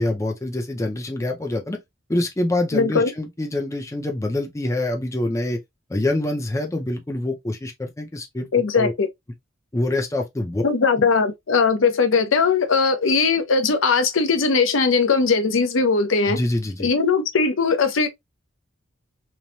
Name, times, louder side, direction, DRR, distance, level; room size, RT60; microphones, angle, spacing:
voice 1, 0.0-1.8 2.1-5.6 5.9-8.5 8.7-8.9 9.7-10.6 16.3-16.9, left 1 dB, 15° left, 0.5 m, -25 dB
voice 2, 2.7-3.1 8.5-9.1 10.6-16.4 16.8-18.1, left 4 dB, 85° left, 0.6 m, -19 dB
3.1 x 2.1 x 2.6 m
head